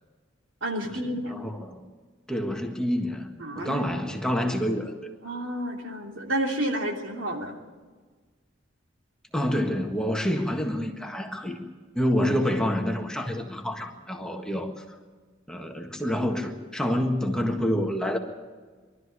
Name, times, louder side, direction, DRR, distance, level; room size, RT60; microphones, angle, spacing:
voice 1, 0.6-1.3 3.4-3.9 5.2-7.6, right 1 dB, 80° right, 1 dB, 3.0 m, -30 dB
voice 2, 1.3-1.8 2.3-3.3 3.6-4.9 9.3-11.6 11.9-14.8 15.5-18.2, equal, 5° left, 2 dB, 1.6 m, -27 dB
23.5 x 13.0 x 9.5 m, 1.4 s
head